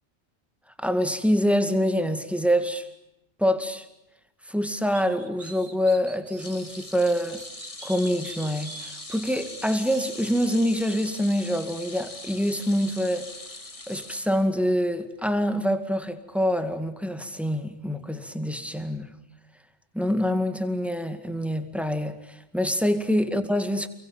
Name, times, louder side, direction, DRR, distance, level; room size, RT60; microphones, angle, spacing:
voice 1, 0.8-2.9 3.4-3.9 4.5-7.4 7.8-13.3 13.9-19.1 19.9-23.9, equal, ahead, 2.1 m, -25 dB
sound 1, 4.9-7.0 7.4-10.3, right 3 dB, 85° right, 2.7 m, -45 dB
sound 2, 6.4-14.8 15.2-15.4 16.6-16.7, left 2 dB, 30° left, 2.0 m, -41 dB
29.5 x 22.5 x 9.0 m
omnidirectional pair, 1.3 m